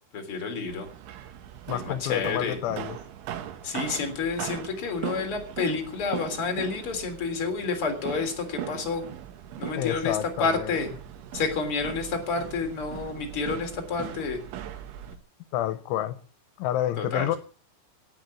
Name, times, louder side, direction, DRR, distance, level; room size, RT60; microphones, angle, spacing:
voice 1, 0.1-0.9 1.7-2.6 3.6-9.0 9.6-10.9 11.3-14.4 17.0-17.3, left 4 dB, 30° left, 3.8 m, -29 dB
sound 1, 0.7-15.2, right 10 dB, 80° right, 3.7 m, -39 dB
voice 2, 1.7-3.0 9.7-10.7 15.5-16.2 16.6-17.4, left 12 dB, 90° left, 3.4 m, -29 dB
17.0 x 8.6 x 8.3 m
omnidirectional pair, 5.4 m